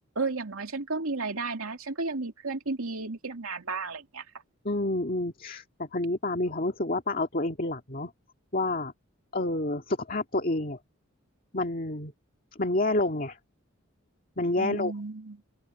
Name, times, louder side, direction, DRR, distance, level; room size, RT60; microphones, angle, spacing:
voice 1, 0.1-4.3 14.6-15.4, right 3 dB, 85° right, 2.6 m, -33 dB
voice 2, 4.6-8.1 8.5-8.9 9.3-10.8 11.5-12.1 12.5-13.4 14.4-14.9, left 2 dB, 40° left, 2.1 m, -29 dB
open air
head